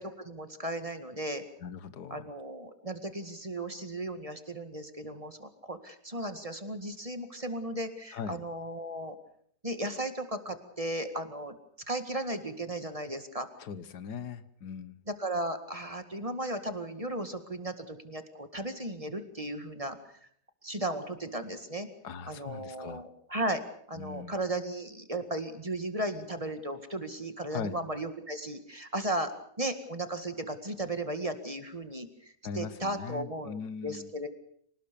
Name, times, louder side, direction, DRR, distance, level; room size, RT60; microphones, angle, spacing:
voice 1, 0.0-1.4 2.1-9.2 9.6-11.5 11.9-13.5 15.1-20.0 20.6-21.9 22.3-23.6 23.9-29.3 29.6-34.3, right 1 dB, 20° right, 8 dB, 2.0 m, -35 dB
voice 2, 1.6-2.3 8.1-8.4 13.6-15.0 22.0-23.0 23.9-24.4 27.5-27.8 32.4-34.1, left 6 dB, 90° left, 14 dB, 1.7 m, -40 dB
25.0 x 19.0 x 6.9 m, 0.64 s
omnidirectional pair, 1.7 m